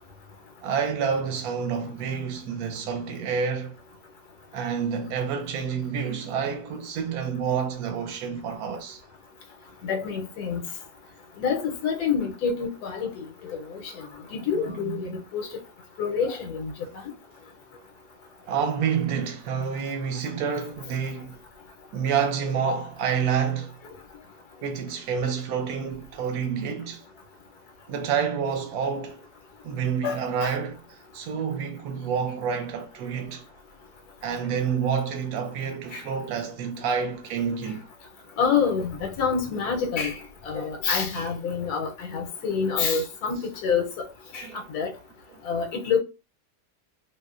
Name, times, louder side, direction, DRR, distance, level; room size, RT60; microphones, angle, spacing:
voice 1, 0.6-3.7 4.5-9.0 14.9-15.2 18.5-21.4 21.9-23.7 24.6-27.0 27.9-29.2 29.6-30.8 31.1-33.4 34.2-37.8 44.4-44.6, right 6 dB, 75° right, 1.0 m, -28 dB
voice 2, 9.8-10.6 11.4-15.5 16.0-16.7 30.0-30.5 35.9-36.0 38.4-40.2 40.4-44.1 44.3-44.9 45.4-46.0, left 6 dB, 80° left, 1.1 m, -27 dB
2.7 x 2.0 x 2.3 m
omnidirectional pair, 1.6 m